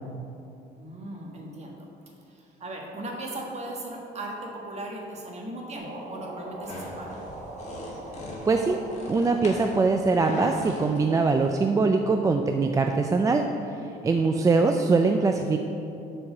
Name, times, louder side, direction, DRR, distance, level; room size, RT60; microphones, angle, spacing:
voice 1, 0.8-1.9 2.3-7.2, right 1 dB, 40° right, -1 dB, 1.5 m, -37 dB
sound 1, 5.7-11.4, right 1 dB, 85° right, 1.3 m, -42 dB
sound 2, 6.6-11.6, left 1 dB, 45° left, 1.6 m, -40 dB
voice 2, 8.5-8.8 9.1-13.5 14.0-15.6, right 4 dB, 20° right, 4 dB, 0.3 m, -22 dB
7.2 x 4.5 x 6.6 m, 2.9 s
cardioid pair, 110°, 17 cm